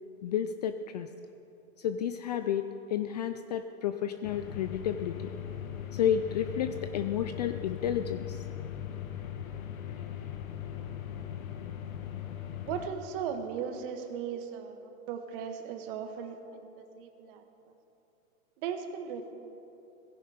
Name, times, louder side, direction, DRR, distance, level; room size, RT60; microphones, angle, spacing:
voice 1, 0.2-1.1 1.8-5.3 5.9-8.4, left 9 dB, 30° left, 9 dB, 0.4 m, -31 dB
sound 1, 4.2-12.9, left 10 dB, 70° left, 1.6 m, -39 dB
voice 2, 12.6-17.4 18.6-19.4, right 7 dB, 40° right, 6 dB, 1.7 m, -37 dB
17.5 x 16.0 x 5.1 m, 2.9 s
hypercardioid pair, 130°, 43 cm